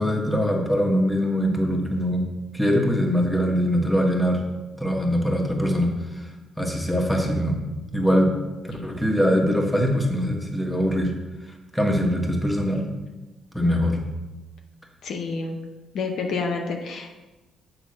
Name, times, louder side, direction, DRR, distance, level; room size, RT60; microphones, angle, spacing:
voice 1, 0.0-2.2 2.5-4.4 4.8-6.3 6.6-7.6 7.9-8.3 8.8-11.1 11.7-12.8 13.5-14.0, equal, 5° left, 1 dB, 1.3 m, -22 dB
voice 2, 15.0-15.6 15.9-17.2, left 4 dB, 70° left, 3 dB, 0.8 m, -29 dB
7.1 x 3.6 x 6.3 m, 1.1 s
cardioid pair, 90°, 0 cm